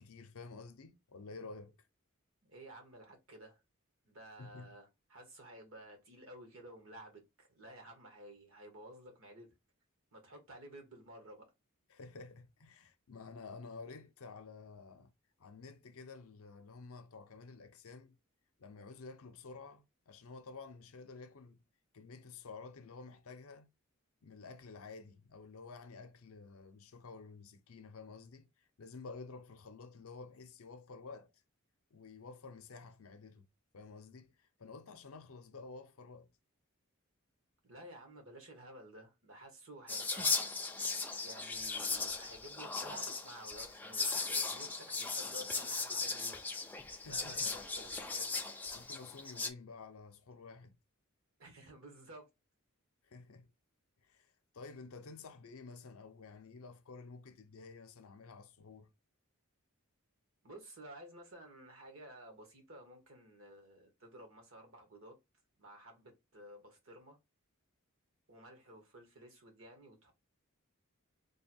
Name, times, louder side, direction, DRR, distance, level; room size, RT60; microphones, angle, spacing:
voice 1, 0.0-1.8 4.4-4.7 11.9-15.1 15.4-18.2 18.6-21.6 21.9-23.7 24.2-31.3 31.9-33.5 33.7-36.3 46.9-47.5 48.7-50.7 53.0-53.5 54.0-58.9, left 4 dB, 75° left, 0.6 m, -51 dB
voice 2, 2.4-3.6 4.1-9.5 10.1-11.4 37.6-40.5 40.8-40.9 41.2-46.4 47.0-48.4 51.4-52.3 60.4-65.2 65.6-67.2 68.3-70.1, right 1 dB, 60° right, 1.3 m, -53 dB
Whispering, 39.9-49.5, left 4 dB, 10° left, 0.4 m, -37 dB
3.4 x 2.2 x 4.3 m
head